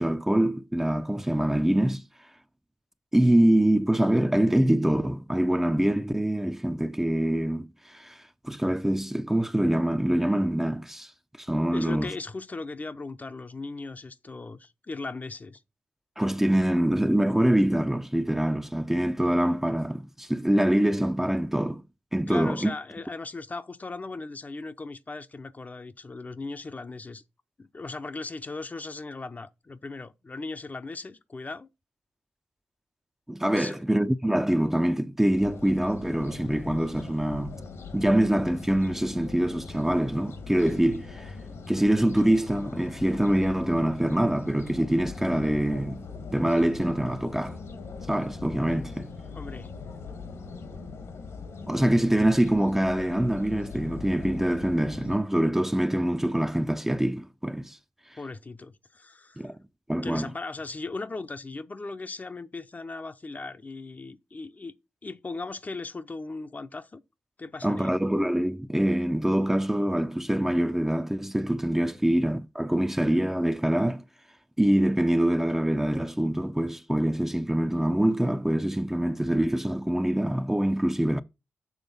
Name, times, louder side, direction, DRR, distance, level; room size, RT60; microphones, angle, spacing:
voice 1, 0.0-2.0 3.1-11.1 11.4-12.1 16.2-21.8 22.1-22.7 33.3-37.6 37.9-41.3 41.7-46.0 46.3-47.6 48.1-49.1 51.7-57.8 59.4-59.6 59.9-60.3 67.6-74.0 74.6-81.2, right 1 dB, 10° right, 0.6 m, -25 dB
voice 2, 11.7-15.6 22.3-27.2 27.6-31.7 33.6-33.8 49.3-49.7 58.2-59.5 60.0-64.7 65.0-67.0 67.4-67.9 72.0-72.1, left 3 dB, 35° left, 0.7 m, -38 dB
sound 1, 35.4-55.2, left 4 dB, 75° left, 1.5 m, -41 dB
7.2 x 3.5 x 5.4 m
supercardioid pair, 50°, 5 cm